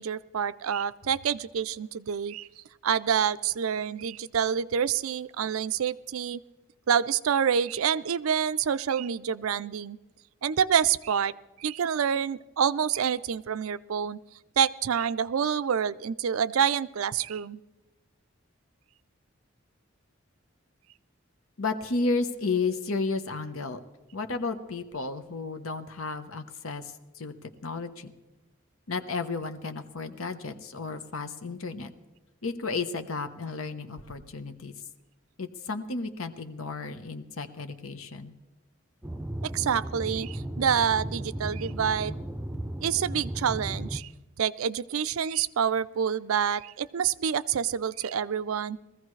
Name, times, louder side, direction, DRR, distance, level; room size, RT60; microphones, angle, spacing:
voice 1, 0.0-2.5 2.8-6.4 6.9-10.0 10.4-11.3 11.6-14.2 14.6-17.6 39.4-42.2 42.8-44.1 44.4-48.8, right 8 dB, 90° right, 16 dB, 0.4 m, -27 dB
voice 2, 21.6-23.8 24.1-28.1 28.9-31.9 32.4-34.7 35.4-38.3, left 3 dB, 85° left, 8 dB, 1.0 m, -33 dB
sound 1, 39.0-44.0, right 1 dB, 10° right, 0.5 m, -35 dB
21.5 x 15.0 x 3.2 m, 1.1 s
head